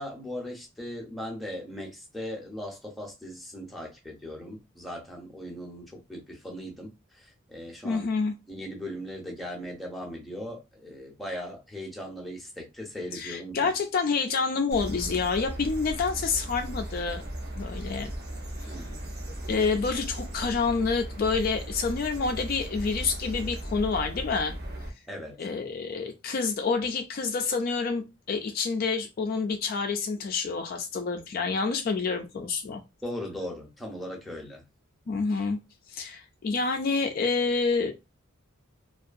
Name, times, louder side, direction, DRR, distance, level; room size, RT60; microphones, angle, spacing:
voice 1, 0.0-8.1 8.5-13.7 18.7-19.1 25.1-25.4 33.0-34.7, equal, ahead, 0.6 m, -38 dB
voice 2, 7.8-8.3 13.1-17.2 17.6-18.1 18.6-18.8 19.5-24.5 25.4-32.8 35.1-35.6 35.9-37.9, left 4 dB, 45° left, 0.3 m, -28 dB
sound 1, 14.7-24.9, right 1 dB, 50° right, 0.7 m, -37 dB
2.6 x 2.3 x 2.5 m
head